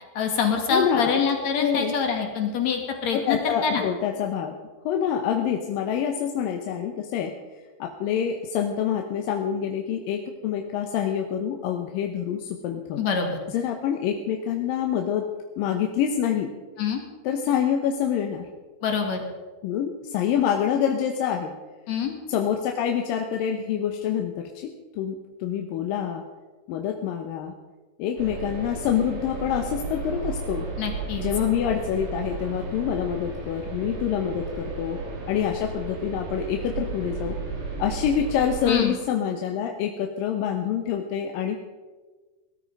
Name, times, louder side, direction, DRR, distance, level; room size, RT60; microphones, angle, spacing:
voice 1, 0.1-3.8 13.0-13.4 16.8-17.0 18.8-19.2 21.9-22.1 30.8-31.3 38.7-39.0, left 6 dB, 55° left, 3 dB, 3.1 m, -25 dB
voice 2, 0.7-1.2 1.6-1.9 3.1-4.5 4.9-7.3 7.8-13.0 13.5-15.3 15.6-16.5 17.2-18.5 19.6-21.5 22.3-26.2 26.7-27.5 28.0-30.7 31.2-35.0 35.3-37.4 37.8-41.6, left 8 dB, 80° left, 3 dB, 2.6 m, -26 dB
sound 1, 28.2-38.7, right 3 dB, 90° right, 5.2 m, -34 dB
18.5 x 13.0 x 5.3 m, 1.3 s
omnidirectional pair, 4.0 m